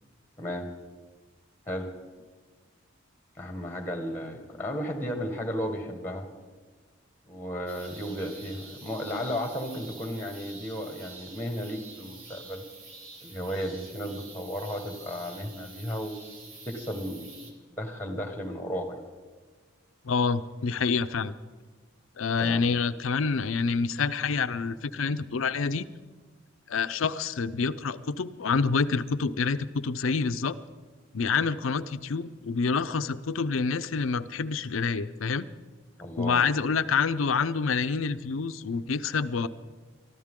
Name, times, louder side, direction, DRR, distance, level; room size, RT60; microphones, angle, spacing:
voice 1, 3.4-6.3 7.3-12.6 13.2-16.2 16.6-17.4 17.8-19.0 22.4-22.7 36.0-36.4, equal, 10° left, 5 dB, 1.5 m, -34 dB
sound 1, 7.7-17.5, right 3 dB, 85° right, 2.4 m, -47 dB
voice 2, 20.0-21.3 22.2-25.8 26.7-30.6 31.1-35.5 36.2-39.5, left 5 dB, 80° left, 13 dB, 0.6 m, -27 dB
23.5 x 13.5 x 3.7 m, 1.4 s
head